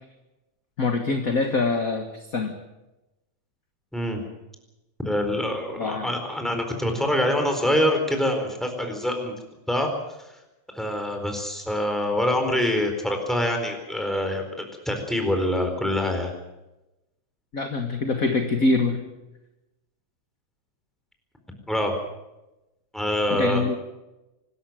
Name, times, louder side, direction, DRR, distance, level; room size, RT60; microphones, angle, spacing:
voice 1, 0.8-2.5 5.8-6.1 17.5-19.0 23.3-23.8, left 3 dB, 35° left, 5 dB, 1.5 m, -24 dB
voice 2, 5.0-9.3 9.7-9.9 10.7-14.4 14.9-16.3 21.7-21.9 22.9-23.6, left 1 dB, ahead, 4 dB, 4.0 m, -25 dB
25.0 x 13.5 x 9.2 m, 0.98 s
omnidirectional pair, 3.4 m